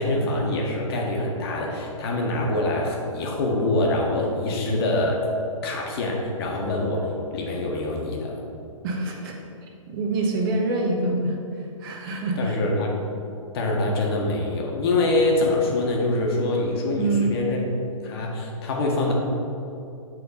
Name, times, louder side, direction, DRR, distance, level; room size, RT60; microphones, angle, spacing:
voice 1, 0.0-5.3 5.6-8.4 12.0-13.0 13.5-17.6 18.0-19.1, left 2 dB, 45° left, 0 dB, 1.2 m, -25 dB
voice 2, 8.8-9.3 9.9-11.4 11.8-12.6 17.0-17.3, right 2 dB, 40° right, 0 dB, 1.1 m, -25 dB
7.2 x 3.6 x 5.1 m, 2.7 s
hypercardioid pair, 130°, 17 cm